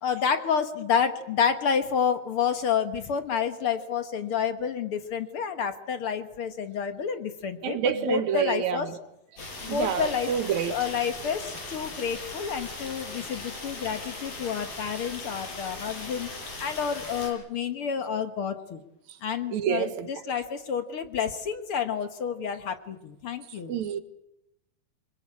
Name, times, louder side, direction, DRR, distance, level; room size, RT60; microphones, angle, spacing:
voice 1, 0.0-8.9 9.6-10.3 10.7-16.3 16.6-18.8 19.2-23.8, left 7 dB, 55° left, 1.6 m, -29 dB
voice 2, 7.6-8.8 9.3-10.8 19.5-20.1 23.7-24.0, right 8 dB, 60° right, 2.7 m, -28 dB
sound 1, 9.4-17.3, left 2 dB, 85° left, 8.4 m, -39 dB
26.0 x 23.0 x 8.6 m
omnidirectional pair, 4.0 m